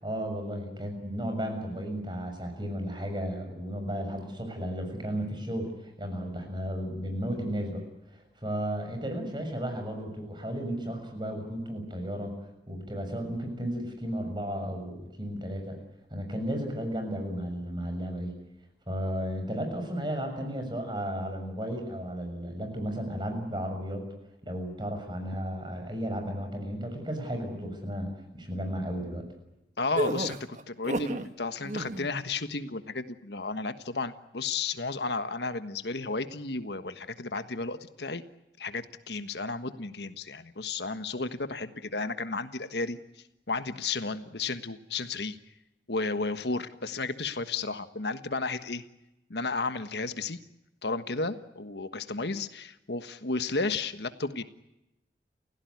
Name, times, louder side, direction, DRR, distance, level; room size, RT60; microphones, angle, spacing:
voice 1, 0.0-7.8 8.1-12.3 12.7-15.8 16.1-18.3 18.9-24.1 24.4-29.3, equal, 25° right, 5 dB, 6.6 m, -34 dB
voice 2, 29.8-38.2 38.6-43.0 43.5-45.4 45.9-48.8 49.3-50.4 50.8-54.4, left 3 dB, 75° left, 10 dB, 1.4 m, -33 dB
sound 1, 30.0-31.3 31.6-32.1, right 1 dB, 45° right, 1.5 m, -31 dB
30.0 x 16.5 x 9.5 m, 0.91 s
head